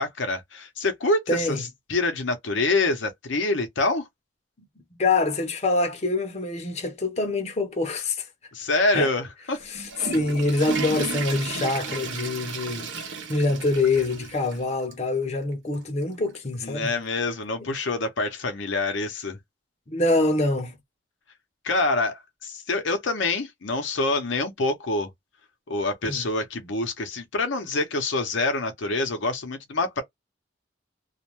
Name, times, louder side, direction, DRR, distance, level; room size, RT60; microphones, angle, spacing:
voice 1, 0.0-4.1 8.5-9.6 16.6-19.4 21.6-25.1 25.7-30.0, left 2 dB, 80° left, 0.7 m, -26 dB
voice 2, 1.3-1.6 5.0-8.3 8.9-9.1 9.7-12.9 13.3-16.9 19.9-20.7 26.1-26.2, left 2 dB, 35° left, 0.7 m, -25 dB
Water / Toilet flush, 9.6-14.6 14.9-15.0 15.7-15.8 17.1-17.2, right 4 dB, 85° right, 0.9 m, -33 dB
2.4 x 2.2 x 3.0 m
head